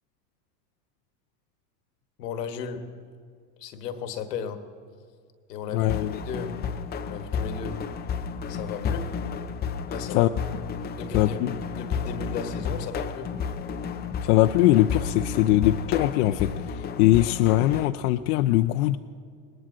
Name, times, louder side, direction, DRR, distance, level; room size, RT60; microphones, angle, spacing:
voice 1, 2.2-2.9 3.6-4.6 5.5-6.6 7.1-7.8 8.5-9.1 9.9-10.3 11.0-13.4, left 6 dB, 85° left, 8 dB, 1.3 m, -35 dB
voice 2, 5.7-6.2 10.1-10.3 11.1-11.5 14.2-19.0, left 15 dB, 70° left, 6 dB, 0.6 m, -21 dB
sound 1, 5.9-17.9, left 6 dB, 20° left, 0.5 m, -32 dB
20.0 x 19.5 x 2.5 m, 2.1 s
supercardioid pair, 110°, 48 cm